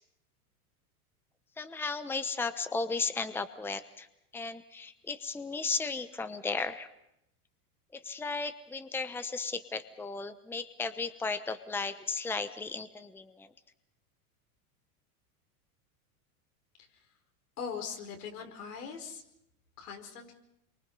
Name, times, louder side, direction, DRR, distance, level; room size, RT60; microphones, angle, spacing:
voice 1, 1.6-4.1 4.3-6.9 7.9-13.5, left 4 dB, 5° left, 11 dB, 0.9 m, -35 dB
voice 2, 17.6-19.2 19.8-20.4, left 6 dB, 80° left, 3 dB, 4.8 m, -40 dB
27.5 x 24.0 x 5.5 m, 0.81 s
hypercardioid pair, 110°, 45 cm